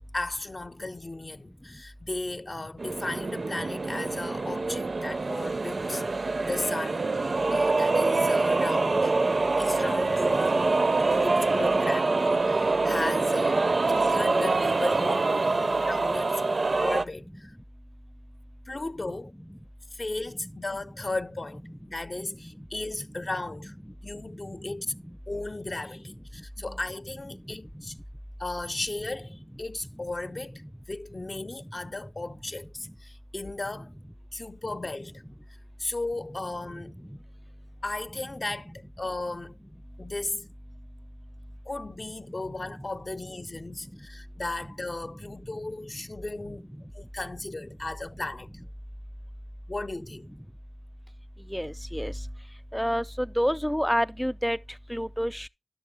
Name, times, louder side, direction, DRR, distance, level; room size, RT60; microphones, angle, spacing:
voice 1, 0.1-6.0 6.5-7.1 7.5-9.1 9.6-15.5 15.8-16.4 16.8-17.6 18.7-19.3 19.9-21.6 21.9-23.7 24.0-24.9 25.3-28.0 28.4-33.9 34.3-35.1 35.5-36.9 37.8-39.6 40.0-40.5 41.6-46.7 46.9-48.5 49.7-50.3, left 2 dB, 50° left, 0.6 m, -35 dB
sound 1, 2.8-17.0, right 3 dB, 70° right, 0.5 m, -25 dB
voice 2, 5.4-5.7 8.0-8.1 8.4-8.5 9.3-9.4 10.6-11.1 11.5-12.0 12.4-12.7 15.6-15.7 16.2-16.3 19.0-19.1 19.5-19.6 20.3-20.6 21.7-21.8 22.1-22.7 23.0-23.1 23.9-25.2 25.6-26.0 26.7-26.8 27.3-27.9 29.9-30.7 31.6-31.9 32.3-32.4 32.8-32.9 34.7-34.8 36.7-37.2 38.7-38.8 42.7-42.9 43.5-43.9 44.6-44.7 45.0-46.1 46.6-46.8 50.1-50.4 51.4-52.3 52.7-55.5, equal, ahead, 0.5 m, -34 dB
11.0 x 6.7 x 3.5 m
wide cardioid pair, 50°, 0 cm